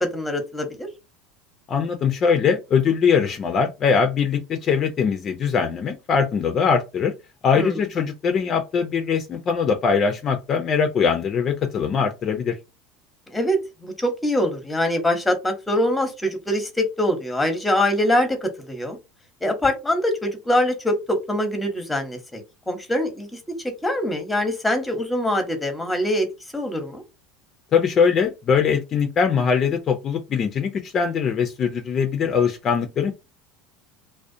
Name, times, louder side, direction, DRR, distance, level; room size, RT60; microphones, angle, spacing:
voice 1, 0.0-0.9 7.5-7.8 13.3-19.0 19.4-23.4 23.8-26.3 26.5-27.0, left 1 dB, 10° left, 6 dB, 0.8 m, -24 dB
voice 2, 1.7-7.1 7.4-12.5 27.7-33.1, left 6 dB, 40° left, 6 dB, 0.4 m, -21 dB
2.4 x 2.0 x 2.6 m, 0.25 s
hypercardioid pair, 90°, 0 cm